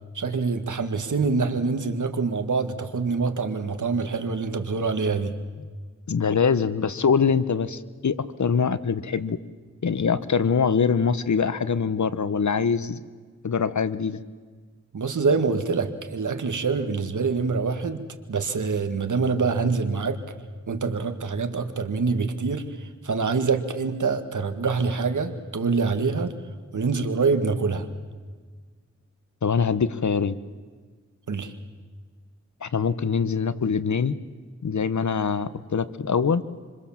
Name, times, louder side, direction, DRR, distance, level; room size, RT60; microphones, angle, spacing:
voice 1, 0.1-5.4 14.9-20.2 20.7-26.3 26.7-27.9 31.3-31.5, right 4 dB, 80° right, 8 dB, 1.9 m, -25 dB
voice 2, 6.1-9.4 9.8-13.0 13.4-14.2 29.4-30.3 32.6-34.1 34.6-36.4, left 6 dB, 70° left, 14 dB, 1.1 m, -23 dB
26.5 x 26.0 x 7.4 m, 1.5 s
wide cardioid pair, 60°, 30 cm